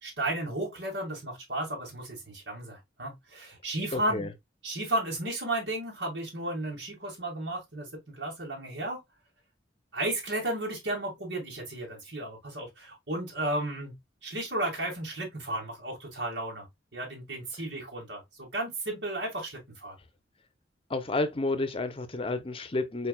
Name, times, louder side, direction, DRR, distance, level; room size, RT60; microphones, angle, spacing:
voice 1, 0.0-4.3 4.6-9.0 9.9-13.9 14.2-16.7 16.9-20.0, right 1 dB, 75° right, 2.1 m, -34 dB
voice 2, 3.9-4.3 20.9-23.1, left 2 dB, 30° left, 0.8 m, -30 dB
4.7 x 4.6 x 2.2 m
head